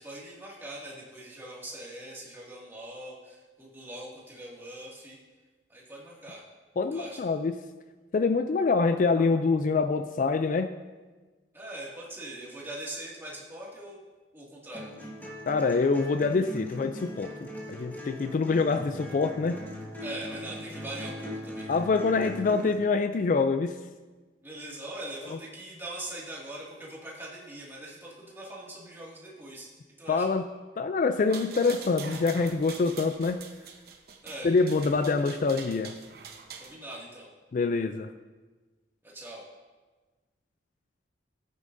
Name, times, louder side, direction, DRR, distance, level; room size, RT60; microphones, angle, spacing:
voice 1, 0.0-5.2 5.7-6.4 6.9-7.2 11.5-14.0 14.3-14.9 20.0-21.8 24.4-29.7 30.0-30.3 34.2-34.5 36.5-37.3 39.0-39.4, right 1 dB, 10° right, -6 dB, 2.1 m, -42 dB
voice 2, 6.8-7.5 8.1-10.7 15.5-19.6 21.7-23.8 30.1-30.4 30.8-33.4 34.4-36.0 37.5-38.1, left 4 dB, 45° left, 9 dB, 0.3 m, -25 dB
sound 1, 14.7-22.7, equal, 10° left, 1.4 m, -40 dB
sound 2, 31.2-36.7, right 5 dB, 55° right, 0.9 m, -44 dB
14.0 x 9.1 x 2.6 m, 1.3 s
head